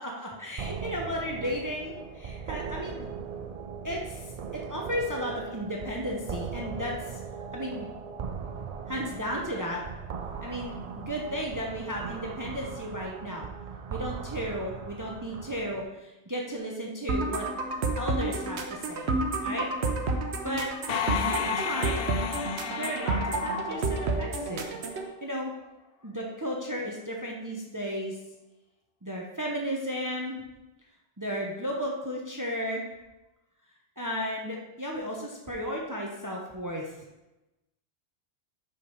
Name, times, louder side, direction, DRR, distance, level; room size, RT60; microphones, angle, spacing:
voice 1, 0.0-3.1 3.8-4.2 4.5-7.2 7.5-7.9 8.9-9.8 10.4-13.5 13.9-17.5 18.0-19.1 19.4-19.7 20.4-22.0 22.6-24.6 25.2-25.5 26.0-28.2 29.0-30.4 31.2-32.9 34.0-36.9, equal, 20° right, -1 dB, 0.8 m, -34 dB
sound 1, 0.6-15.8, right 6 dB, 50° right, 0.5 m, -39 dB
sound 2, 17.1-25.1, right 3 dB, 85° right, 1.1 m, -30 dB
sound 3, 20.9-24.6, left 8 dB, 65° left, 0.7 m, -33 dB
6.1 x 5.9 x 4.7 m, 1.0 s
omnidirectional pair, 1.1 m